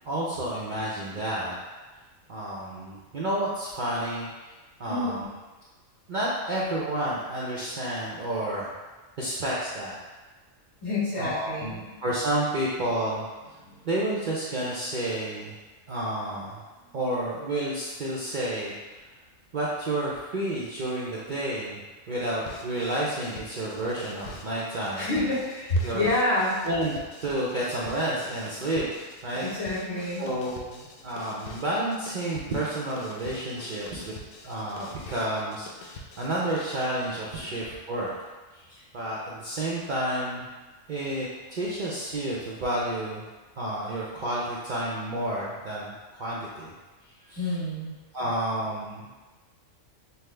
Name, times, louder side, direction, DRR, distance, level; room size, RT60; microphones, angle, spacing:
voice 1, 0.0-1.6 2.3-4.5 4.8-5.3 6.1-8.7 9.2-10.0 11.2-13.3 13.8-15.6 15.9-16.6 16.9-18.7 19.5-21.8 22.1-25.4 25.8-26.1 26.6-26.9 27.2-28.9 29.2-29.5 30.2-34.1 34.4-38.1 38.5-40.5 40.9-43.3 43.6-46.7 47.2-47.6 48.1-49.1, right 1 dB, 55° right, -6 dB, 0.5 m, -30 dB
voice 2, 4.9-5.3 10.8-11.8 13.6-13.8 25.0-26.5 29.4-30.2 37.4-37.5 47.4-47.9, left 1 dB, 55° left, -10 dB, 1.8 m, -28 dB
sound 1, 22.5-36.9, left 3 dB, 80° left, 1.0 m, -45 dB
5.7 x 2.0 x 3.2 m, 1.3 s
omnidirectional pair, 1.4 m